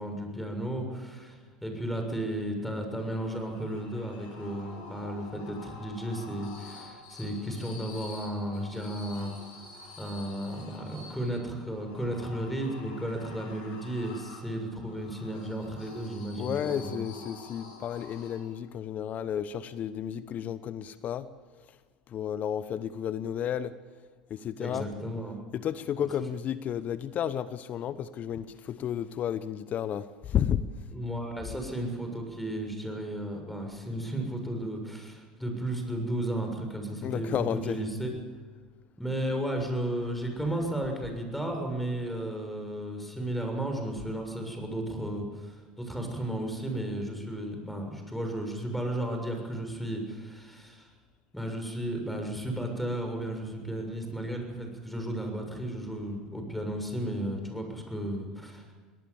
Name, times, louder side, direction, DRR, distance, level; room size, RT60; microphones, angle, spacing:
voice 1, 0.0-9.6 10.0-17.1 24.6-25.4 26.0-26.1 30.9-38.1 39.0-50.9 51.3-58.7, right 1 dB, 5° left, 4 dB, 6.9 m, -34 dB
sound 1, 3.0-18.7, left 3 dB, 65° left, 6.1 m, -48 dB
voice 2, 16.4-21.3 22.1-23.7 24.3-24.9 25.5-30.6 37.0-37.8, left 9 dB, 40° left, 15 dB, 0.9 m, -32 dB
24.5 x 18.5 x 7.3 m, 1.5 s
hypercardioid pair, 75°, 4 cm